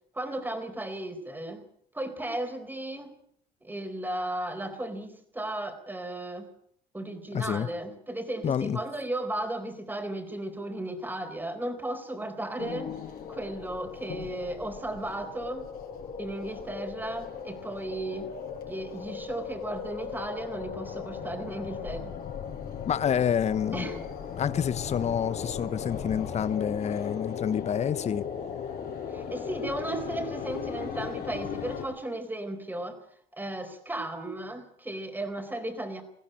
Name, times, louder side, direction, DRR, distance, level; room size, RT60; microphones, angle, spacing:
voice 1, 0.1-1.6 1.9-3.1 3.6-6.5 6.9-12.9 13.3-15.7 16.2-18.3 18.7-22.1 23.7-24.0 29.1-33.0 33.3-36.0, right 1 dB, 10° right, 4.3 m, -35 dB
voice 2, 7.3-7.7 8.4-8.8 22.9-23.9 24.4-28.2, left 8 dB, 40° left, 1.0 m, -28 dB
sound 1, 12.6-31.8, left 7 dB, 65° left, 5.8 m, -37 dB
20.5 x 15.5 x 8.9 m
cardioid pair, 110°, 17 cm